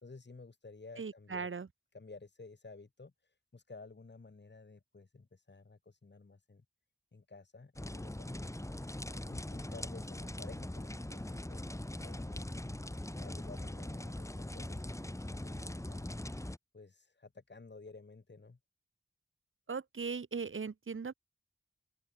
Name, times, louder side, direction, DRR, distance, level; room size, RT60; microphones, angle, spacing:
voice 1, 0.0-1.5 1.9-6.6 7.1-8.5 9.2-11.7 12.0-12.5 13.1-16.1 16.7-18.6, left 3 dB, 60° left, 4.3 m, -53 dB
voice 2, 1.0-1.7 19.7-21.1, right 5 dB, 90° right, 1.4 m, -38 dB
sound 1, 7.8-16.6, left 1 dB, 15° left, 1.7 m, -41 dB
open air
wide cardioid pair, 70°, 20 cm